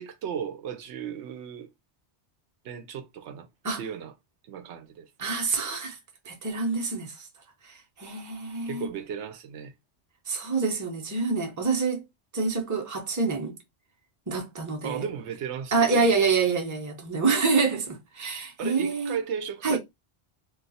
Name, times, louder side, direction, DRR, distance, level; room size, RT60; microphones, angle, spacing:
voice 1, 0.0-1.7 2.6-3.5 3.8-4.1 4.5-5.1 8.6-9.7 14.8-16.1 18.6-19.8, right 8 dB, 80° right, 0.9 m, -35 dB
voice 2, 5.2-6.0 6.3-7.3 7.6-8.9 10.3-12.0 12.3-13.6 14.3-15.1 15.7-19.2 19.6-19.8, right 4 dB, 20° right, 0.6 m, -26 dB
2.4 x 2.3 x 3.9 m
omnidirectional pair, 1.1 m